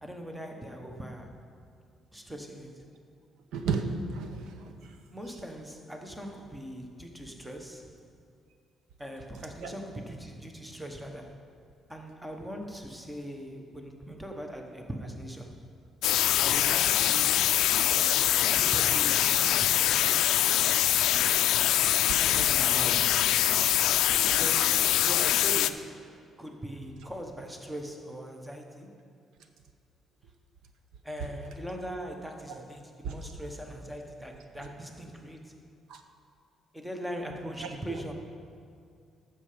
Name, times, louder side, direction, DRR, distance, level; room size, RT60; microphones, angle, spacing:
voice 1, 0.0-1.3 2.1-2.8 5.1-8.0 9.0-11.4 11.9-15.6 16.4-17.6 17.8-18.2 18.5-20.2 20.5-20.6 21.6-21.7 22.0-23.3 24.3-26.0 26.4-28.9 31.0-35.6 36.7-38.1, equal, 5° right, 3 dB, 0.9 m, -41 dB
voice 2, 3.5-4.7 9.6-9.7 22.1-22.2 32.5-32.6 33.0-33.1 35.9-36.0 37.6-38.0, right 5 dB, 80° right, 6 dB, 0.8 m, -33 dB
sound 1, 16.0-25.7, left 12 dB, 80° left, 0.3 m, -24 dB
13.0 x 6.8 x 5.0 m, 2.3 s
cardioid pair, 145°, 0 cm